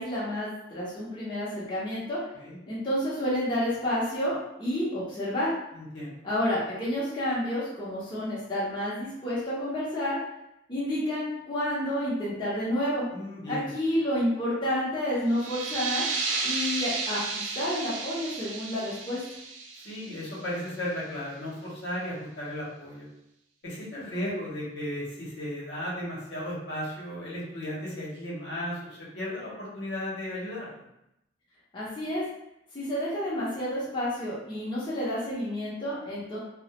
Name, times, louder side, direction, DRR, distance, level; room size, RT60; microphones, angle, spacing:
voice 1, 0.0-2.2 2.7-5.5 6.2-10.2 10.7-13.1 13.5-16.0 16.4-19.2 31.7-32.2 32.7-36.4, equal, 25° left, -9 dB, 0.6 m, -30 dB
voice 2, 5.7-6.2 13.1-13.7 19.8-23.1 23.6-30.7, left 1 dB, 65° left, -6 dB, 0.8 m, -35 dB
sound 1, 15.3-20.7, right 4 dB, 80° right, 0.4 m, -33 dB
2.3 x 2.0 x 2.8 m, 0.83 s
head